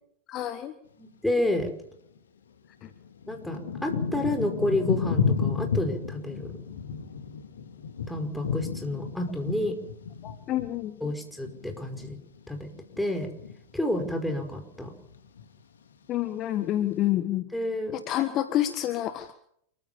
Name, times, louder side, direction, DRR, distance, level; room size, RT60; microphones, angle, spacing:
voice 1, 0.3-0.7 2.8-2.9 10.2-11.0 16.1-17.5 17.9-19.3, left 13 dB, 35° left, 10 dB, 1.6 m, -28 dB
voice 2, 1.0-1.7 3.3-6.6 8.1-9.8 11.0-12.2 12.5-12.7 13.0-13.3 13.7-14.9 17.5-17.9, left 1 dB, 5° left, 4 dB, 5.3 m, -29 dB
Thunder / Rain, 2.2-2.3 2.9-12.5 12.8-13.6 14.2-14.5 14.8-15.6 16.2-16.3, left 6 dB, 65° left, 2.8 m, -32 dB
28.5 x 15.0 x 7.2 m, 0.70 s
figure-of-eight pair, 90°, 0 cm